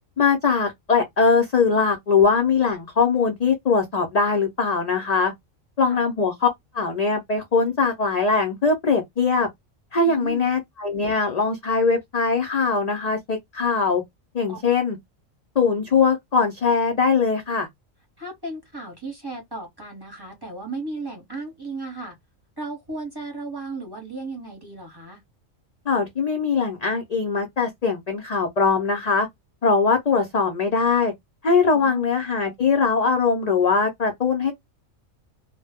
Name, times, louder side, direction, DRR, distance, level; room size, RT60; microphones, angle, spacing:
voice 1, 0.2-5.3 5.8-6.5 6.7-9.5 9.9-14.0 14.3-15.0 15.6-17.7 25.9-29.3 29.6-31.1 31.4-34.5, left 5 dB, 60° left, 0.4 m, -21 dB
voice 2, 10.0-10.5 14.5-14.6 18.2-22.2 22.6-25.2 31.7-32.1, right 3 dB, 20° right, 0.8 m, -35 dB
2.1 x 2.0 x 3.3 m
omnidirectional pair, 1.4 m